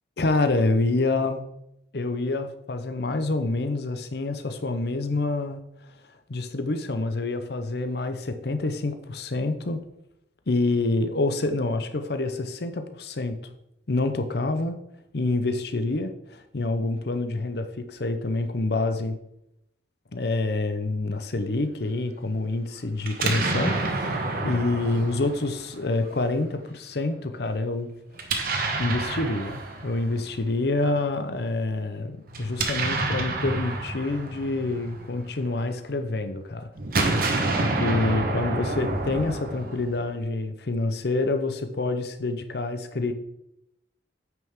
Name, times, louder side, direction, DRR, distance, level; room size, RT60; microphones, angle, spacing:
voice 1, 0.2-1.4 1.9-5.6 6.3-9.8 10.5-13.4 13.9-14.8 15.1-19.2 20.1-27.9 28.8-36.7 37.6-43.1, left 2 dB, 65° left, 8 dB, 0.8 m, -27 dB
Explosion, 23.0-26.1 28.1-30.4 32.3-35.7 36.8-40.1, right 2 dB, 55° right, 1.2 m, -28 dB
8.8 x 6.1 x 3.7 m, 0.81 s
head